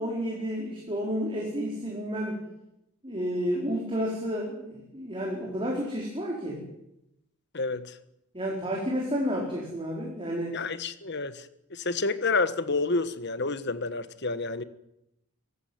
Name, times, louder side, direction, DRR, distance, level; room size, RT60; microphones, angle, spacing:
voice 1, 0.0-2.4 3.0-6.6 8.3-10.6, equal, 25° right, -2 dB, 4.5 m, -31 dB
voice 2, 7.5-8.0 10.5-14.6, left 3 dB, 50° left, 13 dB, 1.3 m, -29 dB
24.5 x 15.5 x 9.5 m, 0.85 s
head